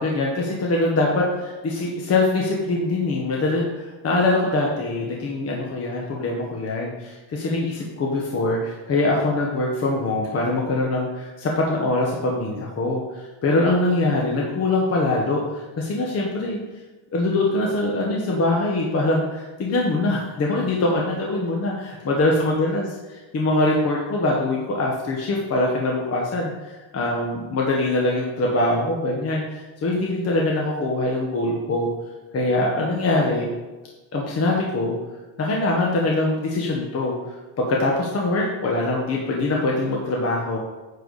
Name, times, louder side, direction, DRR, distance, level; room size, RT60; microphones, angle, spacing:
voice 1, 0.0-16.6 17.1-22.8 23.3-31.9 32.3-33.5 34.1-35.0 35.4-37.1 37.6-40.6, left 2 dB, 30° left, -2 dB, 1.3 m, -23 dB
9.5 x 4.6 x 6.5 m, 1.2 s
cardioid pair, 170°, 46 cm